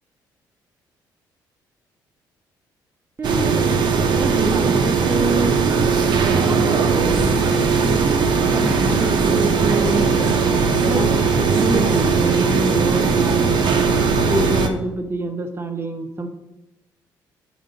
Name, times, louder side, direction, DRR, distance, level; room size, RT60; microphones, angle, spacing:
voice 1, 3.2-3.7 4.1-5.7 6.2-7.4 7.8-10.0 10.8-11.3 11.5-13.6 14.3-16.3, right 2 dB, 30° right, 5 dB, 0.9 m, -27 dB
sound 1, 3.2-14.7, right 5 dB, 60° right, 0.8 m, -18 dB
sound 2, 7.2-12.5, right 2 dB, 90° left, 1.5 m, -30 dB
5.5 x 5.0 x 5.2 m, 0.91 s
cardioid pair, 80°, 8 cm